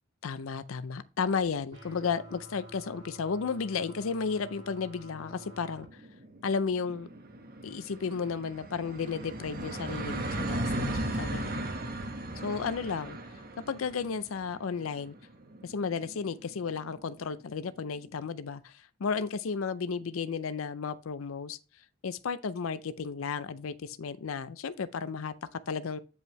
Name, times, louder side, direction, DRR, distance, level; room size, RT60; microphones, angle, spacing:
voice 1, 0.2-6.0 6.4-7.1 7.6-11.7 12.4-13.2 13.7-15.1 15.6-21.6 22.0-26.0, left 5 dB, 80° left, 0.5 m, -33 dB
sound 1, 1.7-5.8, right 1 dB, 60° right, 2.3 m, -49 dB
sound 2, 4.9-5.0 5.3-5.4 5.6-17.1, right 1 dB, 45° right, 1.3 m, -37 dB
9.2 x 5.4 x 3.1 m
head